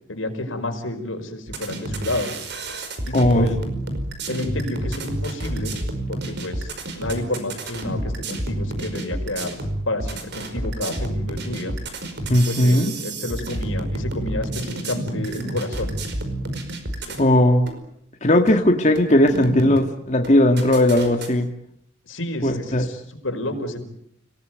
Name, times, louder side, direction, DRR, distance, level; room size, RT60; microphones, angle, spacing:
voice 1, 0.1-2.3 3.0-3.6 4.3-5.7 6.1-6.7 7.0-9.6 9.9-11.7 12.5-15.9 17.1-17.2 22.1-23.8, left 1 dB, 90° left, 4 dB, 5.2 m, -30 dB
sound 1, 1.5-17.3 17.7-17.8 18.5-18.6 18.9-19.9 20.2-21.3, right 1 dB, 60° right, 5.1 m, -30 dB
voice 2, 3.1-3.5 12.3-12.9 17.2-17.7 18.2-21.5 22.4-22.9, left 1 dB, 35° left, 3 dB, 2.0 m, -17 dB
30.0 x 18.5 x 9.4 m, 0.74 s
head